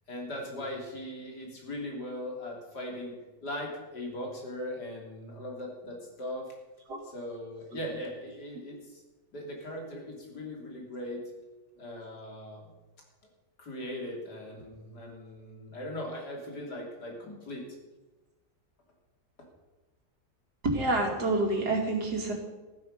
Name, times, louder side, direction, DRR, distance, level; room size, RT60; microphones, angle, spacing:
voice 1, 0.1-6.5 7.0-9.0 9.3-11.2 11.8-12.6 13.6-17.7, left 1 dB, 75° left, 0 dB, 3.7 m, -39 dB
voice 2, 20.6-22.3, right 2 dB, 70° right, 1 dB, 3.0 m, -27 dB
14.5 x 9.6 x 6.6 m, 1.1 s
omnidirectional pair, 1.8 m